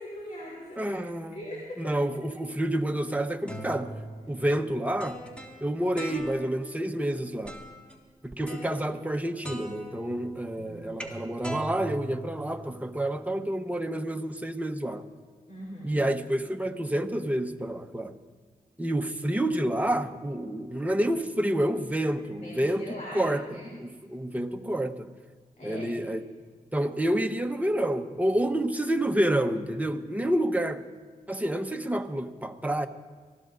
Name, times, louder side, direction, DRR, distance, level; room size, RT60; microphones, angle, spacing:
voice 1, 0.0-0.9 1.3-1.8 8.4-8.6 10.5-11.0 15.5-16.0 22.4-23.3 23.5-23.7 25.6-25.9, left 1 dB, 50° left, -4 dB, 3.7 m, -41 dB
voice 2, 0.8-3.9 4.3-5.2 5.6-7.6 8.2-15.0 15.8-18.2 18.8-25.1 25.6-26.2 26.7-30.8 31.3-32.9, right 1 dB, 10° right, 6 dB, 1.1 m, -29 dB
sound 1, 3.2-6.7 7.5-7.9 8.5-9.2 9.4-12.9, right 1 dB, 5° left, 2.7 m, -42 dB
24.0 x 15.5 x 2.6 m, 1.5 s
cardioid pair, 40°, 16 cm